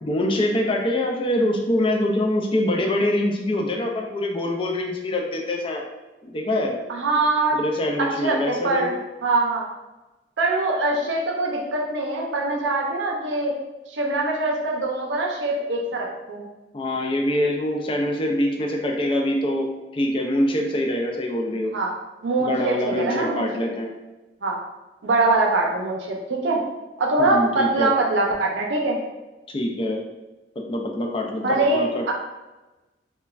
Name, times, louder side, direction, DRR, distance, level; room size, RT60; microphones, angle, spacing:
voice 1, 0.0-5.8 6.2-6.8 7.6-9.0 16.7-21.7 22.4-23.9 27.2-27.9 29.5-30.0 30.6-32.0, left 1 dB, 30° left, 1 dB, 0.3 m, -24 dB
voice 2, 6.9-7.6 8.0-8.9 9.2-9.7 10.4-13.5 13.9-16.4 21.7-21.9 22.2-23.5 24.4-24.6 25.0-26.6 27.0-29.0 31.4-32.1, right 2 dB, 90° right, -1 dB, 0.5 m, -23 dB
3.0 x 2.2 x 2.3 m, 1.1 s
head